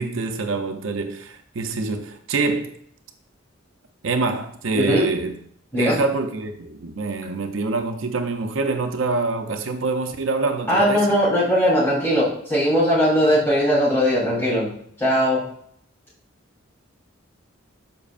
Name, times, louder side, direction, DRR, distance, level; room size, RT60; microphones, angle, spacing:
voice 1, 0.0-2.7 4.0-5.3 5.7-11.1, right 3 dB, 70° right, 0.6 m, -25 dB
voice 2, 4.7-5.1 5.7-6.0 10.7-15.4, equal, 10° left, 3.3 m, -19 dB
12.0 x 5.1 x 2.5 m
head